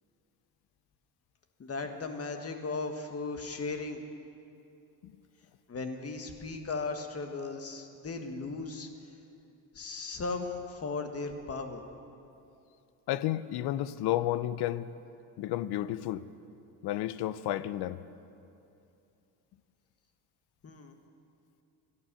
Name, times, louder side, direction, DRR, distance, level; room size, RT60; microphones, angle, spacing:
voice 1, 1.6-4.0 5.7-8.9 9.7-11.8 20.6-21.0, left 3 dB, 35° left, 6 dB, 1.5 m, -37 dB
voice 2, 13.1-14.9 15.4-16.2 16.8-18.0, left 13 dB, 70° left, 16 dB, 0.6 m, -31 dB
13.0 x 11.5 x 6.9 m, 2.7 s
supercardioid pair, 85°, 41 cm